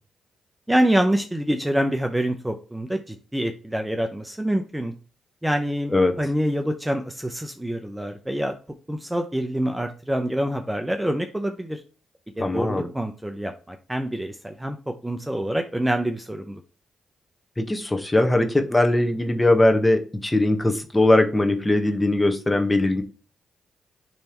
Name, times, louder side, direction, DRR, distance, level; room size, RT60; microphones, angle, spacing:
voice 1, 0.7-4.9 5.4-8.5 8.9-11.8 12.4-16.6, right 1 dB, 10° right, 5 dB, 0.8 m, -26 dB
voice 2, 12.4-12.9 17.6-23.0, left 1 dB, 20° left, 5 dB, 1.4 m, -20 dB
10.0 x 3.4 x 3.1 m, 0.36 s
hypercardioid pair, 45°, 0 cm